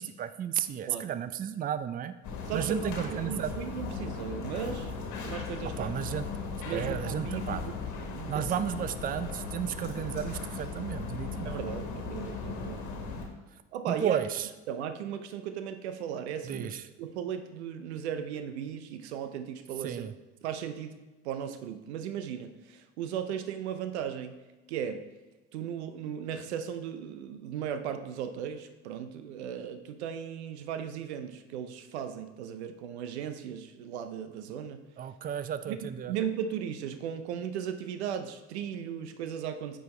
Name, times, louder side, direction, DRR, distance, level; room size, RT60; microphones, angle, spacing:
voice 1, 0.0-2.1 2.5-3.5 5.8-6.3 6.7-7.6 8.3-11.6 13.9-14.5 16.4-16.8 19.8-20.1 35.0-36.1, right 9 dB, 25° right, 13 dB, 0.4 m, -33 dB
sound 1, 2.2-13.2, left 4 dB, 60° left, 1.5 m, -37 dB
voice 2, 2.5-4.9 5.2-5.9 6.6-7.8 8.1-8.5 11.4-12.8 13.7-14.2 14.7-16.7 17.0-20.1 20.4-21.0 21.2-24.4 24.7-25.1 25.5-34.8 35.7-39.8, right 8 dB, 85° right, 9 dB, 0.6 m, -36 dB
8.8 x 5.1 x 3.2 m, 1.1 s
hypercardioid pair, 60°, 33 cm